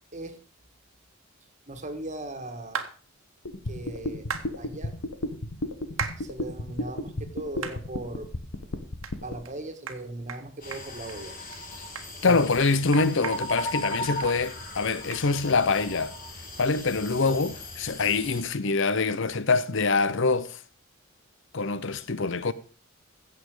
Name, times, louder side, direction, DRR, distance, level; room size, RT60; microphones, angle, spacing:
voice 1, 1.7-2.8 3.6-4.3 4.5-4.9 6.2-8.3 9.2-11.4 12.2-12.4, right 1 dB, 35° right, 1.7 m, -38 dB
sound 1, 2.7-2.9 4.3-4.5 6.0-6.2 6.7-6.8 7.6-7.8 8.3-8.4 9.0-9.1 9.4-9.5 9.9-10.0 10.3-10.4 10.7-11.2 11.5-11.6 11.9-14.3 14.6-14.7 15.1-15.2, right 6 dB, 70° right, 1.4 m, -35 dB
sound 2, 3.5-9.3, left 1 dB, 85° left, 1.4 m, -32 dB
sound 3, 10.6-18.4, left 1 dB, 40° left, 3.0 m, -37 dB
voice 2, 12.2-16.1 16.6-20.6 21.5-22.5, left 4 dB, 60° left, 0.8 m, -25 dB
15.5 x 7.5 x 5.0 m
head